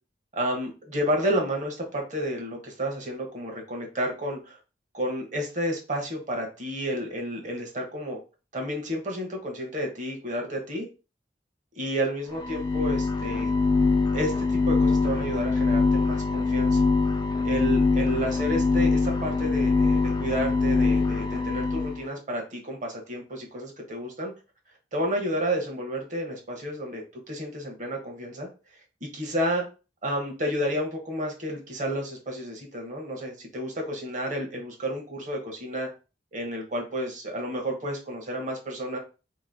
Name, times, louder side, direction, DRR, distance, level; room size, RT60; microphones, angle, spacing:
voice 1, 0.3-4.6 4.9-8.2 8.5-10.9 11.7-13.5 14.1-16.8 17.4-24.3 24.9-28.5 29.0-29.7 30.0-35.9 36.3-39.0, equal, 45° right, 2 dB, 1.1 m, -31 dB
sound 1, 12.3-22.0, left 3 dB, 25° left, 0.4 m, -23 dB
3.0 x 2.7 x 3.9 m, 0.32 s
head